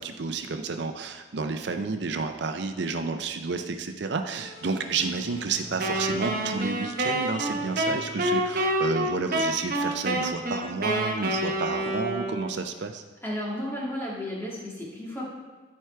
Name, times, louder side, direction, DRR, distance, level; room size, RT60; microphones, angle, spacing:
voice 1, 0.0-13.0, right 4 dB, 60° right, 7 dB, 0.5 m, -31 dB
sound 1, 4.4-9.6, equal, 85° left, 3.1 m, -47 dB
Wind instrument woodwind instrument, 5.8-12.6, right 1 dB, 45° right, 1.0 m, -28 dB
voice 2, 13.2-15.2, left 1 dB, 10° left, -5 dB, 2.1 m, -33 dB
14.0 x 4.8 x 4.5 m, 1.4 s
head